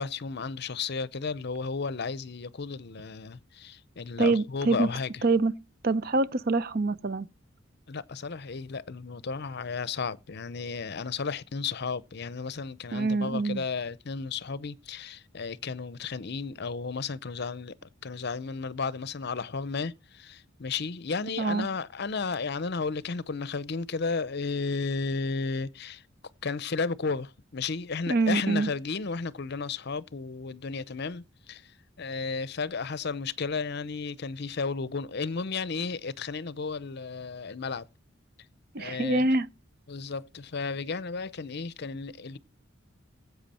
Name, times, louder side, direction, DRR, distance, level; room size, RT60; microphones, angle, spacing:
voice 1, 0.0-5.2 7.9-26.0 26.4-31.7 32.0-37.9 38.8-39.2 39.9-42.4, left 4 dB, 55° left, 0.7 m, -33 dB
voice 2, 4.2-4.9 5.2-5.5 5.8-7.3 12.9-13.6 21.4-21.7 28.1-28.7 38.7-39.5, right 3 dB, 50° right, 0.6 m, -25 dB
16.0 x 8.2 x 4.3 m
head